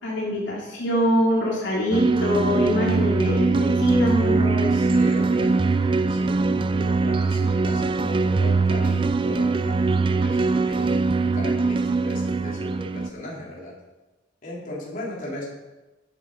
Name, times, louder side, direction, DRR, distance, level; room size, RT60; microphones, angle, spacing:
voice 1, 0.0-4.7, equal, 75° left, -5 dB, 3.1 m, -24 dB
sound 1, 1.9-13.1, right 3 dB, 25° right, 0.4 m, -22 dB
voice 2, 4.7-13.7 14.4-15.4, left 1 dB, 45° left, -5 dB, 3.5 m, -37 dB
11.0 x 9.3 x 5.3 m, 1.1 s
head